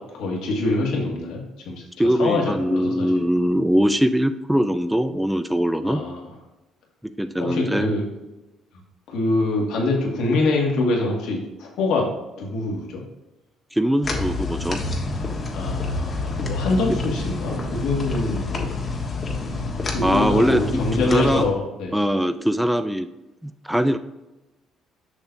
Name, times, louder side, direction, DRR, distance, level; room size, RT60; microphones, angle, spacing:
voice 1, 0.1-3.1 5.8-6.2 7.4-8.1 9.1-12.1 12.4-13.0 15.5-18.7 19.9-21.9, left 2 dB, 80° left, -1 dB, 1.8 m, -25 dB
voice 2, 2.0-6.0 7.2-7.9 13.7-14.8 20.0-21.4 21.9-23.1 23.4-24.0, equal, 5° right, 10 dB, 0.3 m, -21 dB
sound 1, 14.0-21.5, left 3 dB, 35° left, 1.3 m, -27 dB
6.8 x 6.1 x 2.7 m, 1.0 s
cardioid pair, 105°, 0 cm